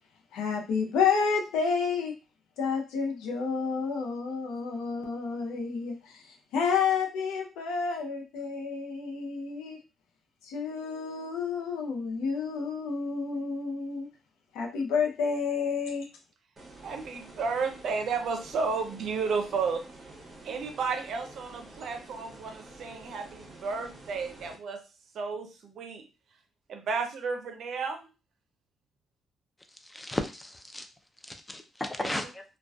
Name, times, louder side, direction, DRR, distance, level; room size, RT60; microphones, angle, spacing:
voice 1, 0.3-2.1 2.6-9.8 10.4-14.1 14.5-16.1, left 5 dB, 90° left, 2 dB, 0.6 m, -30 dB
sound 1, 16.6-24.6, right 2 dB, 35° right, 0.8 m, -49 dB
voice 2, 16.8-19.8 20.4-24.8 25.1-26.0 26.7-28.1 32.0-32.1, right 5 dB, 65° right, 6 dB, 0.5 m, -32 dB
voice 3, 29.9-30.9 31.3-32.4, left 1 dB, 10° left, 6 dB, 0.4 m, -34 dB
2.4 x 2.2 x 2.3 m, 0.31 s
cardioid pair, 90°, 0 cm